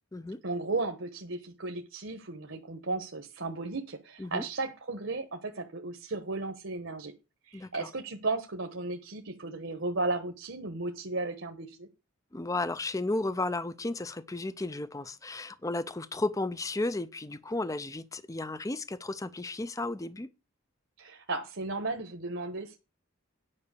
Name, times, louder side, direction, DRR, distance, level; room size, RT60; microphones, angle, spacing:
voice 1, 0.4-7.1 7.4-11.9 21.0-22.8, right 3 dB, 65° right, 1.2 m, -35 dB
voice 2, 7.5-7.9 12.3-20.3, left 2 dB, 15° left, 0.5 m, -34 dB
9.8 x 5.7 x 6.8 m
head